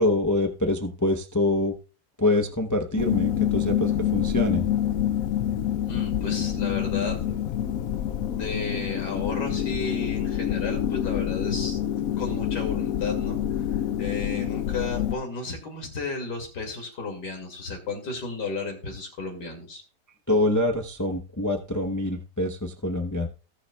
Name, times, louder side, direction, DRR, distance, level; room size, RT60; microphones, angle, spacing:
voice 1, 0.0-1.7 2.2-4.7 20.3-23.3, left 1 dB, 25° left, 5 dB, 0.3 m, -25 dB
sound 1, 3.0-15.1, left 10 dB, 65° left, 1.0 m, -27 dB
voice 2, 5.9-7.3 8.3-11.8 12.2-19.8, left 3 dB, 85° left, 2 dB, 3.0 m, -33 dB
19.0 x 7.1 x 2.3 m, 0.34 s
omnidirectional pair, 1.8 m